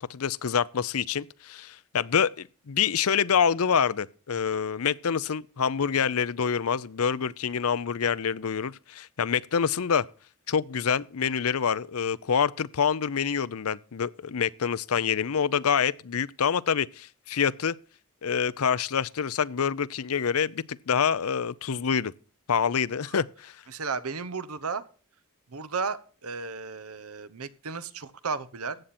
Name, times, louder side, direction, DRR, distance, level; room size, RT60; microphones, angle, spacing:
voice 1, 0.1-10.0 10.5-17.8 18.2-22.1 22.5-23.6, left 7 dB, 80° left, 0.6 m, -26 dB
voice 2, 23.7-24.8 25.5-28.8, right 4 dB, 90° right, 1.0 m, -34 dB
14.5 x 8.9 x 4.3 m
head